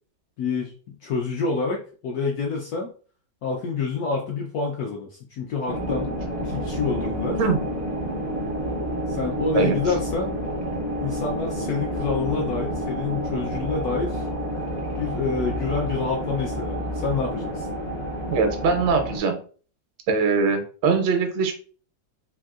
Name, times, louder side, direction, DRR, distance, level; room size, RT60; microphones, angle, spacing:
voice 1, 0.4-0.7 1.0-2.9 3.4-6.1 6.4-7.4 9.1-10.3 11.0-14.2 15.0-17.7, left 4 dB, 70° left, 0 dB, 0.9 m, -27 dB
sound 1, 5.7-19.2, equal, 55° right, 0.4 m, -29 dB
voice 2, 18.3-19.4 20.1-21.5, right 4 dB, 80° right, 4 dB, 1.4 m, -21 dB
3.5 x 2.6 x 2.3 m, 0.40 s
omnidirectional pair, 2.1 m